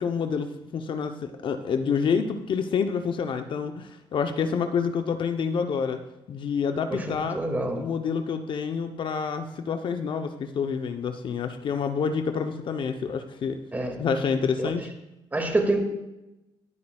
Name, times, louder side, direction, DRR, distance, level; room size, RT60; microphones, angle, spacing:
voice 1, 0.0-6.0 6.3-7.4 7.7-13.6 14.0-14.9, left 6 dB, 55° left, 7 dB, 0.7 m, -28 dB
voice 2, 7.3-7.8 13.7-14.0 14.6-14.7 15.3-15.8, right 2 dB, 15° right, 3 dB, 2.0 m, -26 dB
18.5 x 8.6 x 2.3 m, 0.96 s
cardioid pair, 95°, 10 cm